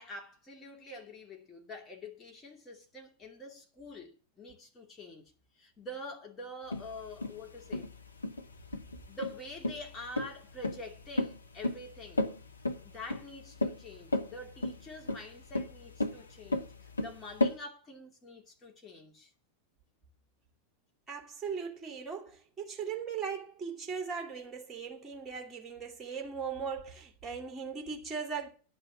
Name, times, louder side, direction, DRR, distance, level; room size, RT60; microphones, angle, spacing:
voice 1, 0.0-7.9 9.1-12.3 12.8-19.3, left 1 dB, 20° left, 2.7 m, -46 dB
sound 1, 6.7-17.6, left 2 dB, 80° left, 1.0 m, -33 dB
voice 2, 21.1-28.5, right 6 dB, 15° right, 2.8 m, -39 dB
10.5 x 5.5 x 8.1 m
figure-of-eight pair, 90°, 0 cm